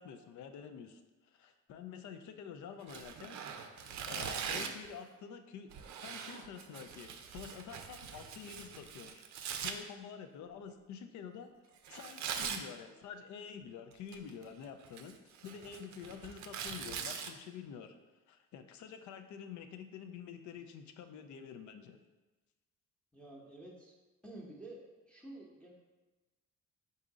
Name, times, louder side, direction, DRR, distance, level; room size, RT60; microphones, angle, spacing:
voice 1, 0.0-3.4 3.7-5.7 6.0-9.2 9.6-11.5 11.9-15.2 15.4-17.9 18.3-22.0, left 7 dB, 70° left, 8 dB, 0.5 m, -48 dB
Tearing, 2.8-4.9 5.7-9.7 11.8-12.6 13.9-14.4 14.8-17.3, right 7 dB, 70° right, 0.5 m, -42 dB
voice 2, 23.1-23.9 24.2-25.7, right 2 dB, 5° left, -4 dB, 0.8 m, -50 dB
3.7 x 2.7 x 4.7 m, 1.2 s
cardioid pair, 90°, 30 cm